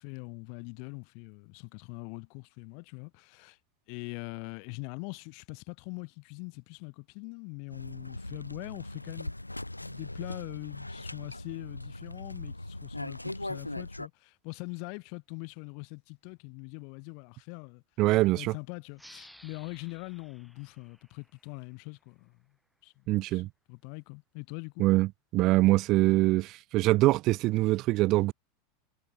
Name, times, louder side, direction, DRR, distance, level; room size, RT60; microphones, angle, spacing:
voice 1, 0.0-3.6 3.9-9.3 9.8-17.8 18.3-22.3 22.8-23.4 23.7-24.8, left 40 dB or more, 50° left, 3.6 m, -42 dB
sound 1, 7.7-14.1, left 1 dB, 85° left, 0.8 m, -40 dB
voice 2, 18.0-18.5 23.1-23.5 24.8-25.1 25.3-28.3, right 19 dB, 45° right, 0.3 m, -24 dB
sound 2, 18.9-22.2, equal, ahead, 5.2 m, -56 dB
figure-of-eight pair, 85°, 0 cm